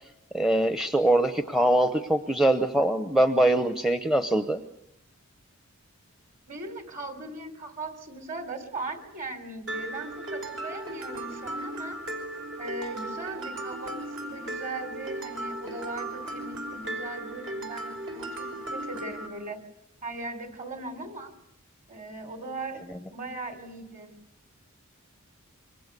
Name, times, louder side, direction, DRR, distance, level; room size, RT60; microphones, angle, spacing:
voice 1, 0.3-4.6, right 1 dB, ahead, 8 dB, 0.9 m, -23 dB
voice 2, 6.5-12.0 12.6-19.6 20.0-21.3 21.9-22.8 23.1-24.1, right 2 dB, 40° right, 8 dB, 3.7 m, -38 dB
Mallet percussion, 9.7-19.3, right 1 dB, 60° right, 5.2 m, -36 dB
27.5 x 24.5 x 6.8 m, 0.84 s
head